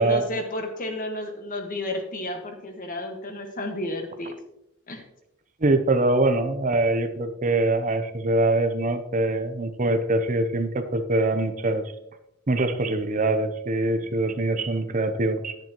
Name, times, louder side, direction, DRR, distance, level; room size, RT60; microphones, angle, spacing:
voice 1, 0.0-4.3 4.9-5.0, left 1 dB, 40° left, 4 dB, 1.6 m, -32 dB
voice 2, 5.6-11.9 12.5-15.6, right 2 dB, 35° right, 8 dB, 0.7 m, -23 dB
11.5 x 10.5 x 3.0 m, 0.85 s
head